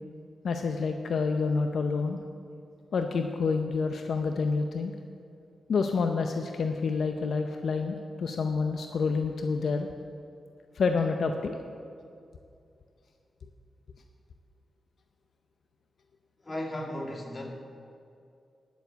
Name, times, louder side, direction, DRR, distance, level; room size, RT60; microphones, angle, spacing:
voice 1, 0.4-2.2 2.9-4.9 5.7-9.9 10.8-11.6, left 4 dB, 75° left, 5 dB, 0.6 m, -28 dB
voice 2, 16.4-17.5, left 1 dB, 30° left, 1 dB, 2.0 m, -35 dB
10.5 x 7.1 x 7.9 m, 2.5 s
cardioid pair, 70°, 0 cm